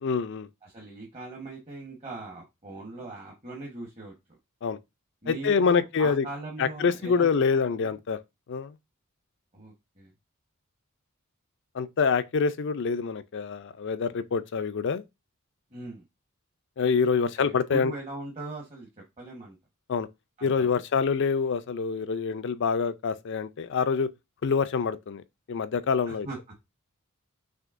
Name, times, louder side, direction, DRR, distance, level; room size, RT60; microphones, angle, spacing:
voice 1, 0.0-0.5 4.6-4.8 5.3-6.2 6.6-8.2 8.5-8.8 11.7-15.0 16.8-17.9 19.9-20.1 20.4-24.1 24.4-25.2 25.5-26.3, left 5 dB, 55° left, 0.4 m, -26 dB
voice 2, 0.6-4.1 5.2-7.9 9.5-10.1 15.7-16.0 17.1-18.9 19.2-19.6 20.4-20.8 26.1-26.4, right 2 dB, 30° right, 1.2 m, -40 dB
6.2 x 2.8 x 2.5 m
head